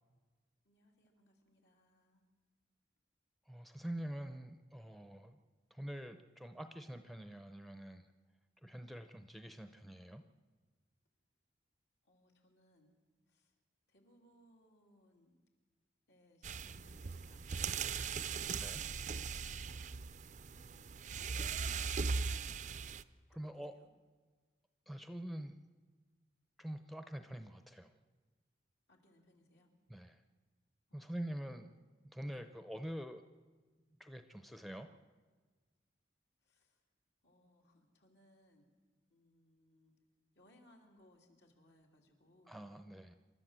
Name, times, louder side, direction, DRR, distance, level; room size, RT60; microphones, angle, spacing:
voice 1, 0.6-2.2 12.1-12.9 13.3-13.5 13.9-15.3 16.1-20.0 20.7-22.2 23.5-23.9 28.9-29.7 30.9-31.2 32.3-32.4 36.4-36.8 37.2-38.7 39.1-39.9 40.3-42.6, left 1 dB, 70° left, 1 dB, 3.3 m, -68 dB
voice 2, 3.5-5.4 5.7-8.1 8.6-10.2 18.6-18.8 23.3-23.8 24.9-25.6 26.6-27.9 29.9-30.2 30.9-31.7 32.1-33.2 34.0-34.9 42.5-43.2, right 1 dB, ahead, 8 dB, 0.7 m, -45 dB
sound 1, 16.4-23.0, right 5 dB, 40° right, 0.5 m, -39 dB
27.5 x 12.5 x 7.6 m, 1.4 s
head